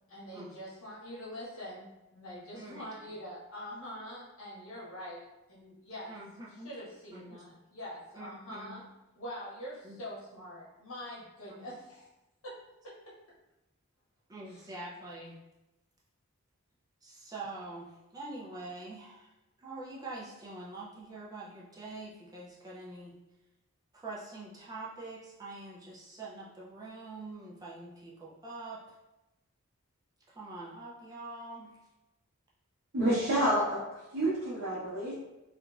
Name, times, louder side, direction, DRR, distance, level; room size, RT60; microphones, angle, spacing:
voice 1, 0.1-6.2 6.5-8.8 9.1-12.1 12.4-13.2 14.5-14.7, equal, 75° left, -8 dB, 1.1 m, -44 dB
voice 2, 2.5-2.8 6.1-6.7 7.1-7.5 8.1-8.8 9.8-10.0 11.6-11.7 14.3-15.4 17.0-19.3 19.6-23.2 23.9-28.8 30.3-31.8, right 2 dB, 15° right, -5 dB, 0.3 m, -45 dB
voice 3, 32.9-33.8 34.1-35.1, right 1 dB, 65° right, -10 dB, 0.8 m, -28 dB
2.9 x 2.4 x 2.3 m, 0.98 s
head